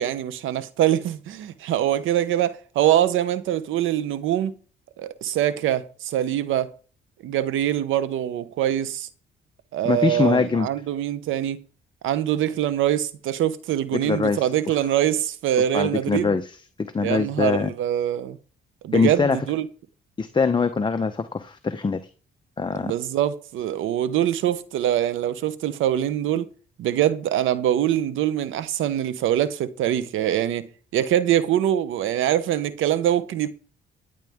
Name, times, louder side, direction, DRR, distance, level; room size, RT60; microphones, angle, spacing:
voice 1, 0.0-4.6 5.0-6.7 7.2-9.1 9.7-11.6 12.0-16.4 17.0-18.4 18.8-19.7 22.7-26.5 26.8-33.5, right 11 dB, 85° right, 0.9 m, -24 dB
voice 2, 9.8-10.7 13.9-14.8 15.7-16.5 16.8-17.7 18.9-19.4 20.2-22.0 22.6-22.9, left 4 dB, 25° left, 0.8 m, -23 dB
14.5 x 9.0 x 3.6 m
cardioid pair, 90°, 20 cm